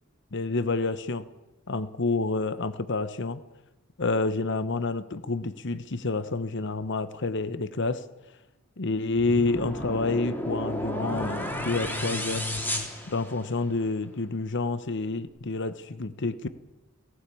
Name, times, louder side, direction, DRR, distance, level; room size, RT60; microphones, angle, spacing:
voice 1, 0.3-1.3 1.7-3.4 4.0-8.0 8.8-12.5 13.1-16.5, left 3 dB, 55° left, 14 dB, 1.0 m, -28 dB
sound 1, 9.2-13.8, left 1 dB, 10° left, 3.2 m, -32 dB
18.0 x 17.5 x 8.5 m, 1.0 s
head